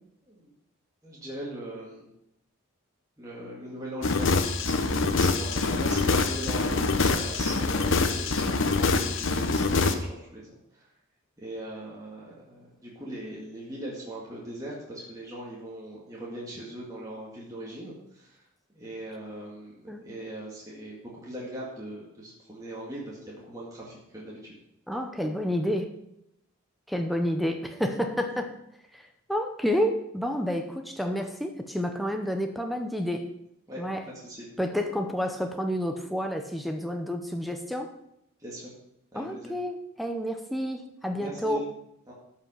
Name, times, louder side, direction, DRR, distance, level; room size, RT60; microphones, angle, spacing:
voice 1, 1.0-2.1 3.2-4.4 4.6-10.9 11.4-18.4 18.7-19.7 20.0-24.5 33.7-34.0 34.2-34.5 38.4-38.7 39.1-39.5 41.2-41.7 42.1-42.2, right 1 dB, 15° right, -6 dB, 2.0 m, -40 dB
sound 1, 4.0-9.9, left 3 dB, 60° left, 0.8 m, -25 dB
voice 2, 24.9-25.9 26.9-28.5 28.9-33.3 33.8-34.0 34.6-37.9 39.1-41.6, equal, ahead, 5 dB, 0.7 m, -30 dB
12.5 x 5.6 x 5.6 m, 0.80 s
head